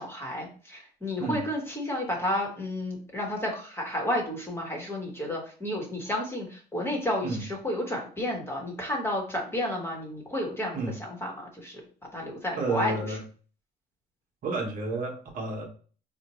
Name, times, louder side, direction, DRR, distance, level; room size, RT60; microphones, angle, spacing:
voice 1, 0.0-11.8 12.1-13.2, left 1 dB, 15° left, 1 dB, 1.1 m, -31 dB
voice 2, 12.6-13.2 14.4-15.6, right 2 dB, 55° right, 1 dB, 0.9 m, -31 dB
4.2 x 2.2 x 3.0 m, 0.41 s
cardioid pair, 110°, 17 cm